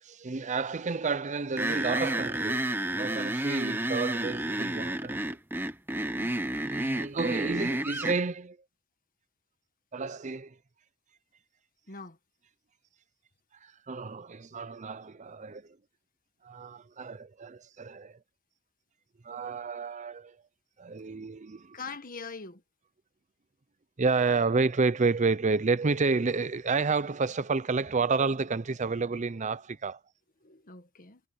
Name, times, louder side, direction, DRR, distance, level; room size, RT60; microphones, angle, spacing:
voice 1, 0.0-5.4 6.6-8.6 9.9-10.5 13.6-15.8 16.4-18.2 19.2-20.4 20.8-21.8 24.0-30.0, right 4 dB, 35° right, 0.6 m, -30 dB
sound 1, 1.6-8.2, right 1 dB, 10° right, 1.2 m, -31 dB
voice 2, 11.9-12.2 21.7-22.6 30.4-31.2, left 4 dB, 45° left, 1.7 m, -43 dB
head